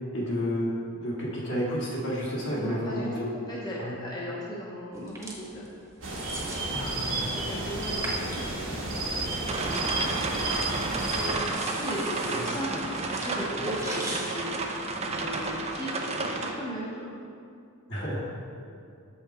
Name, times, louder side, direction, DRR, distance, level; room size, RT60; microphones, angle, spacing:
voice 1, 0.1-0.7 1.0-3.1 3.8-3.9 6.7-6.9 12.3-12.4 13.9-14.0 17.9-18.2, equal, 55° left, -6 dB, 1.9 m, -30 dB
voice 2, 2.5-5.7 7.3-10.7 10.9-12.7 13.1-14.6 15.0-17.1, equal, 20° left, -6 dB, 0.9 m, -37 dB
sound 1, 4.9-15.7, right 1 dB, 15° right, 1.1 m, -43 dB
sound 2, 6.0-11.3, right 2 dB, 65° right, 1.4 m, -31 dB
sound 3, 9.5-16.5, right 3 dB, 30° right, 0.5 m, -31 dB
7.0 x 5.6 x 4.3 m, 2.4 s
head